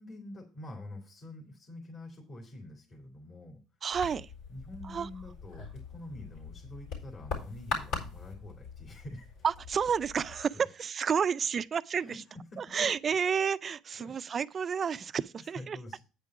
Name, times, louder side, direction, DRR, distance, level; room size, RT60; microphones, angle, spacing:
voice 1, 0.0-3.6 4.5-9.3 10.5-10.7 12.0-12.2 12.5-12.9 14.0-14.1 15.5-16.0, left 1 dB, 35° left, 2.5 m, -46 dB
voice 2, 3.8-4.3 4.8-5.1 9.4-12.2 12.6-15.8, right 7 dB, 40° right, 0.4 m, -30 dB
sound 1, 3.9-10.5, left 4 dB, 75° left, 4.1 m, -41 dB
8.9 x 5.2 x 5.8 m
supercardioid pair, 100°, 0 cm